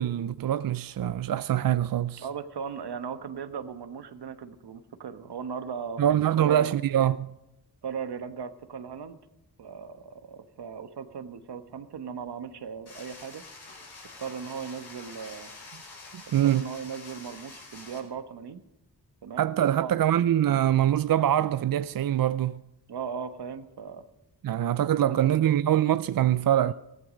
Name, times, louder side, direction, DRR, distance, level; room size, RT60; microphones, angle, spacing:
voice 1, 0.0-2.2 6.0-7.4 16.1-16.6 19.4-22.6 24.4-26.7, right 11 dB, 60° right, 0.5 m, -24 dB
voice 2, 2.2-6.0 6.4-6.7 7.8-9.2 9.6-13.4 14.2-15.5 16.4-18.6 19.2-20.0 22.9-24.0 24.9-25.5 26.6-26.7, right 6 dB, 80° right, 1.2 m, -37 dB
sound 1, 12.9-18.0, left 3 dB, 75° left, 5.2 m, -46 dB
15.5 x 15.0 x 5.1 m
cardioid pair, 55°, 39 cm